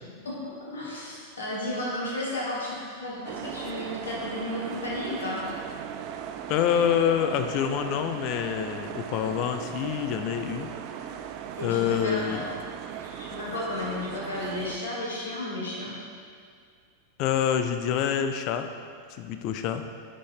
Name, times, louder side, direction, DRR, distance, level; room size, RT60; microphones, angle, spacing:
voice 1, 0.2-5.5 11.6-12.6 13.0-15.9, left 1 dB, 70° left, -5 dB, 1.5 m, -33 dB
sound 1, 3.2-14.8, right 9 dB, 45° right, 0.3 m, -38 dB
voice 2, 6.5-10.7 11.6-12.5 17.2-18.7 19.1-19.9, left 9 dB, 40° left, 8 dB, 0.4 m, -26 dB
9.9 x 4.0 x 3.2 m, 2.1 s
figure-of-eight pair, 90°, 0 cm